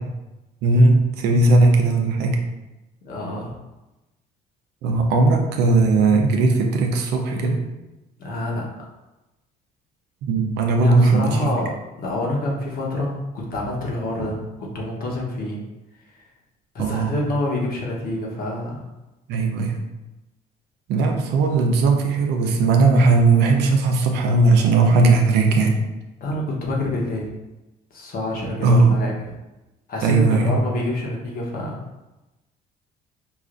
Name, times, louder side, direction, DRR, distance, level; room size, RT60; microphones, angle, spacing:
voice 1, 0.6-2.4 4.8-7.6 10.3-11.5 16.8-17.1 19.3-19.8 20.9-25.8 28.6-29.0 30.0-30.6, right 3 dB, 85° right, 2 dB, 0.6 m, -18 dB
voice 2, 3.0-3.6 8.2-8.7 10.8-15.6 16.7-18.9 26.2-27.3 27.9-29.3 29.9-31.8, left 1 dB, 60° left, -2 dB, 1.1 m, -27 dB
4.9 x 2.5 x 2.5 m, 1.0 s
cardioid pair, 110°, 17 cm